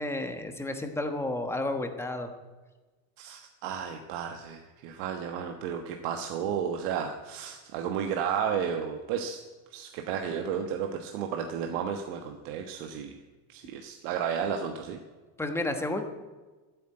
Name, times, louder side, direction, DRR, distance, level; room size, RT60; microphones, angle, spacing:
voice 1, 0.0-2.3 15.4-16.0, left 2 dB, 5° left, 6 dB, 1.2 m, -31 dB
voice 2, 3.2-9.4 9.7-13.2 13.5-15.0, right 7 dB, 75° right, 5 dB, 1.3 m, -33 dB
13.5 x 8.5 x 8.9 m, 1.3 s
cardioid pair, 160°, 40 cm